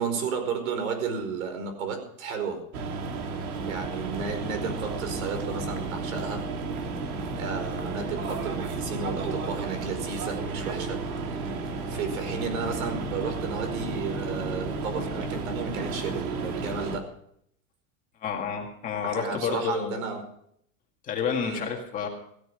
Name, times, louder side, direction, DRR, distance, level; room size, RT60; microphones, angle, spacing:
voice 1, 0.0-2.6 3.4-6.5 7.3-11.0 11.3-11.4 11.9-17.1 19.0-20.2 21.4-21.6, right 5 dB, 70° right, 7 dB, 5.1 m, -33 dB
sound 1, 2.7-17.0, right 3 dB, 90° right, 2.7 m, -32 dB
voice 2, 18.2-20.0 21.0-22.1, left 6 dB, 20° left, 1 dB, 2.0 m, -30 dB
16.0 x 13.5 x 5.0 m, 0.69 s
supercardioid pair, 175°, 42 cm